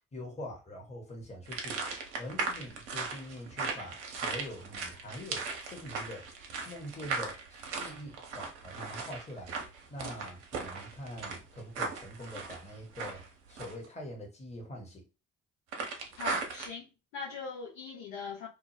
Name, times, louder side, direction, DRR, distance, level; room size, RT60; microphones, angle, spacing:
voice 1, 0.1-1.8 2.2-6.3 6.6-9.6 9.9-15.0, left 1 dB, 20° left, 1.0 m, -44 dB
sound 1, 1.5-13.8 15.7-16.7, right 4 dB, 70° right, 0.6 m, -38 dB
voice 2, 16.2-18.5, left 5 dB, 60° left, 0.8 m, -41 dB
2.3 x 2.0 x 3.1 m
figure-of-eight pair, 40°, 36 cm